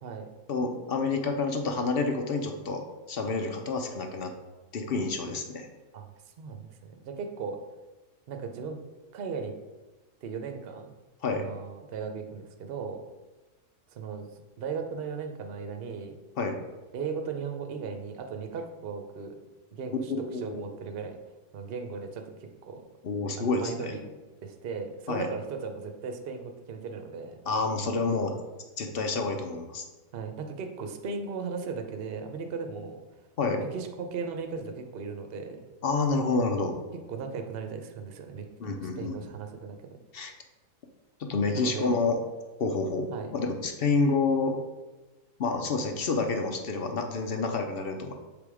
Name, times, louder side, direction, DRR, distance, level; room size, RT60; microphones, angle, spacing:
voice 1, 0.5-2.8 3.1-4.3 4.7-5.7 11.2-11.4 16.4-16.6 19.9-20.6 23.0-24.0 25.1-25.3 27.5-28.3 28.8-29.9 33.4-33.6 35.8-36.7 38.6-39.2 40.1-40.3 41.3-42.2 42.6-43.1 43.3-44.6 45.4-48.1, left 3 dB, 55° left, 4 dB, 0.7 m, -28 dB
voice 2, 6.4-7.6 8.3-8.8 9.1-9.5 10.2-10.9 11.3-13.0 13.9-14.3 14.6-16.2 16.9-19.4 19.7-21.2 21.5-22.8 23.4-24.1 24.4-27.4 30.1-33.0 33.5-35.6 37.1-40.0 41.5-41.9 43.1-43.3, right 5 dB, 50° right, 5 dB, 0.7 m, -37 dB
7.4 x 3.5 x 4.8 m, 1.2 s
omnidirectional pair, 1.6 m